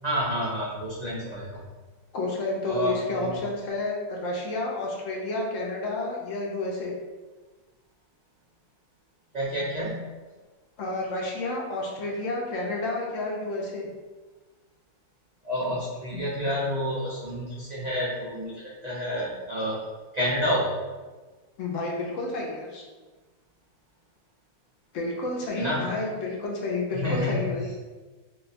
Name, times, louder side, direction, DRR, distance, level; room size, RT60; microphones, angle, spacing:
voice 1, 0.0-1.6 2.6-3.3 9.3-10.0 15.4-19.8 20.1-20.8 25.6-25.8 26.9-27.4, equal, 60° right, -7 dB, 0.4 m, -29 dB
voice 2, 2.1-6.9 10.8-13.9 16.1-16.2 21.6-22.8 24.9-27.7, left 2 dB, 70° left, -2 dB, 1.0 m, -30 dB
2.8 x 2.2 x 3.9 m, 1.3 s
omnidirectional pair, 1.5 m